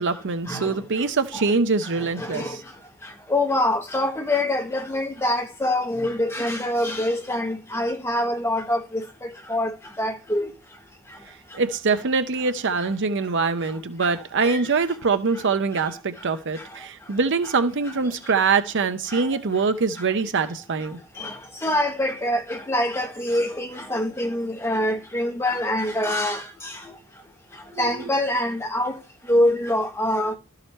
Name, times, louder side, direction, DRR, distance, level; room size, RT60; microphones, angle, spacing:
voice 1, 0.0-2.6 11.5-21.0 27.8-28.0, right 4 dB, 55° right, 0.7 m, -24 dB
voice 2, 2.2-2.5 3.3-9.0 9.5-10.5 14.0-14.1 14.4-14.6 21.2-21.3 21.6-26.4 27.8-28.9 29.3-30.3, left 1 dB, 10° left, 1.4 m, -24 dB
12.5 x 4.8 x 4.4 m
head